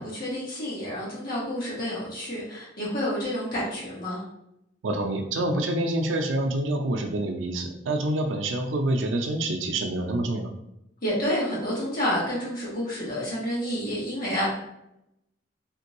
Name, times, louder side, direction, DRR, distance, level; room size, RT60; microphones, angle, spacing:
voice 1, 0.0-4.2 11.0-14.5, equal, 50° left, -6 dB, 1.4 m, -29 dB
voice 2, 4.8-10.5, right 1 dB, 85° right, 4 dB, 0.5 m, -27 dB
3.6 x 2.5 x 2.9 m, 0.83 s
head